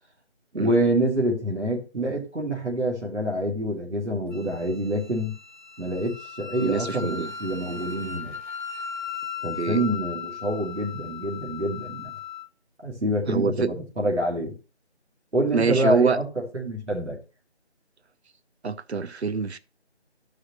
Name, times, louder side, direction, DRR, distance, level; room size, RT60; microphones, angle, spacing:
voice 1, 0.5-5.3 5.8-8.3 9.4-12.1 12.8-14.5 15.3-16.2 16.5-17.2, right 1 dB, 85° right, 2.2 m, -26 dB
Wind instrument woodwind instrument, 4.3-12.5, left 7 dB, 45° left, 0.6 m, -37 dB
voice 2, 6.6-7.3 9.6-9.8 13.3-13.7 15.5-16.2 18.6-19.6, right 5 dB, 70° right, 0.7 m, -25 dB
14.0 x 4.9 x 2.8 m
figure-of-eight pair, 175°, 34 cm